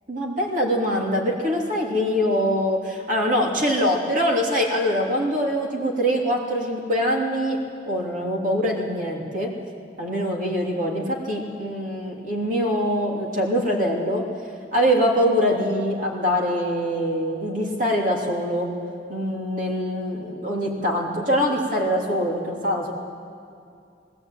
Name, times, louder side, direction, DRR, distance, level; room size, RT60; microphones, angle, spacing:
voice 1, 0.1-7.6 7.8-9.5 10.0-14.3 14.7-18.7 19.1-22.9, equal, 50° right, -1 dB, 3.1 m, -23 dB
19.0 x 17.0 x 9.1 m, 2.4 s
head